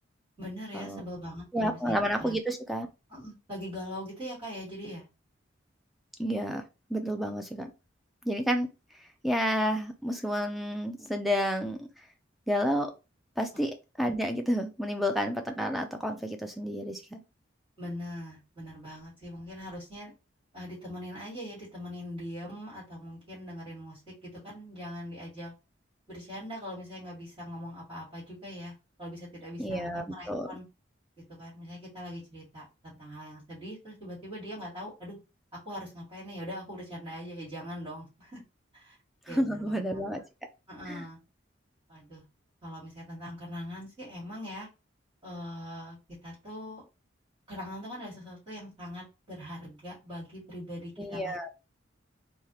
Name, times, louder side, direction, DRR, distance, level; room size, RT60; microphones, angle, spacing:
voice 1, 0.4-2.4 3.1-5.1 17.8-20.1 20.5-25.5 26.1-28.7 29.0-30.6 31.3-35.2 35.7-38.4 38.7-39.0 39.3-40.1 40.7-41.2 41.9-42.2 42.6-44.7 45.2-46.0 46.2-46.8 47.5-51.5, equal, 25° right, -9 dB, 1.9 m, -42 dB
voice 2, 1.5-2.9 6.2-6.6 6.9-7.7 8.2-8.7 9.2-11.9 12.5-12.9 13.4-17.2 29.6-30.5 39.3-40.2 40.9-41.0 51.0-51.5, equal, ahead, 4 dB, 0.4 m, -30 dB
3.3 x 2.3 x 2.8 m, 0.28 s
head